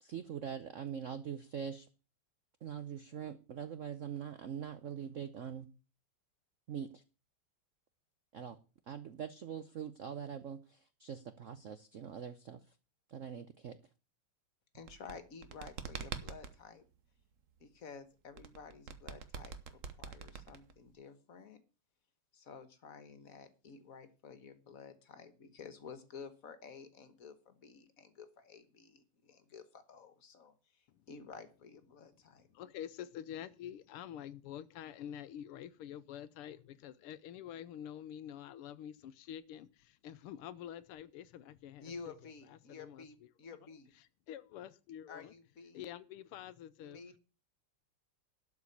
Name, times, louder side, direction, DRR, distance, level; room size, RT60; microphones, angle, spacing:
voice 1, 0.0-1.9 2.6-5.7 6.7-6.9 8.3-8.6 8.9-10.6 11.0-12.6 13.1-13.7, right 8 dB, 80° right, 0.6 m, -43 dB
voice 2, 14.7-16.9 17.6-21.6 22.3-32.5 41.8-43.9 45.1-45.8 46.8-47.2, left 5 dB, 45° left, 1.5 m, -52 dB
sound 1, 14.7-16.5 18.4-20.9, right 6 dB, 50° right, 1.0 m, -44 dB
voice 3, 32.5-42.1 42.7-43.0 44.3-45.3 45.7-47.0, left 10 dB, 90° left, 1.7 m, -47 dB
12.0 x 4.9 x 8.5 m
omnidirectional pair, 2.4 m